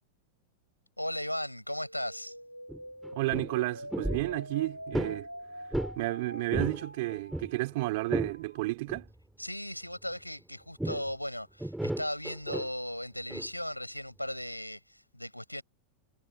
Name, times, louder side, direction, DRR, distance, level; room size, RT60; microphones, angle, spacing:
voice 1, 1.0-2.3 9.4-15.6, left 1 dB, 90° left, 7.1 m, -37 dB
sound 1, 1.7-8.7, equal, 90° right, 6.7 m, -45 dB
sound 2, 2.7-2.8 3.0-3.5 3.9-4.3 4.9-5.2 5.7-6.0 6.3-6.8 7.1-8.3 8.9-9.1 10.8-11.1 11.6-12.7 13.3-13.5, right 1 dB, 5° right, 3.4 m, -33 dB
voice 2, 3.1-5.3 6.0-9.1, right 21 dB, 50° right, 4.4 m, -32 dB
figure-of-eight pair, 90°, 0 cm